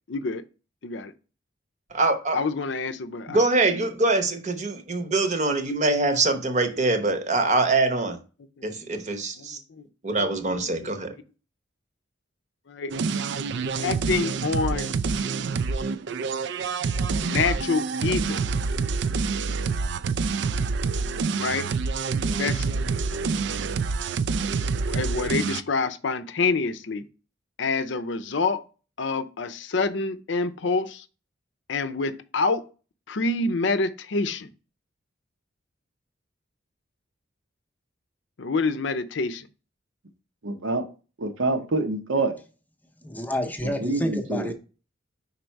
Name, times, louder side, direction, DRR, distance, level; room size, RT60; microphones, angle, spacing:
voice 1, 0.1-0.4 0.8-1.1 2.3-3.4 8.6-8.7 9.4-9.9 10.6-10.9 12.7-12.9 13.8-14.9 17.2-18.4 21.4-21.7 22.4-22.7 24.9-27.0 27.6-28.6 29.0-31.0 31.7-32.7 33.1-34.5 38.4-39.5, left 4 dB, 65° left, 0.6 m, -27 dB
voice 2, 1.9-2.4 3.3-8.2 8.6-9.6 10.0-11.1, right 2 dB, 40° right, 0.9 m, -24 dB
sound 1, 12.9-25.6, right 4 dB, 60° right, 0.4 m, -27 dB
voice 3, 40.4-40.9 41.2-42.3 43.6-44.5, right 2 dB, 85° right, 1.0 m, -26 dB
voice 4, 43.0-44.5, equal, 10° left, 0.7 m, -29 dB
5.3 x 4.1 x 4.5 m
head